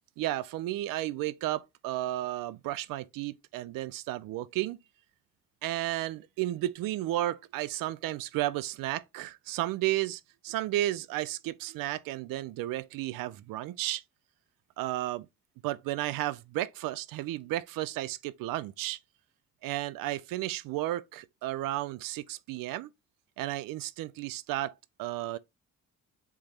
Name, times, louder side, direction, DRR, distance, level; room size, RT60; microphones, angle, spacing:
voice 1, 0.2-4.8 5.6-14.0 14.8-15.3 15.6-19.0 19.6-22.9 23.4-24.7 25.0-25.4, right 15 dB, 75° right, 0.5 m, -33 dB
3.6 x 3.1 x 4.3 m
supercardioid pair, 65°, 34 cm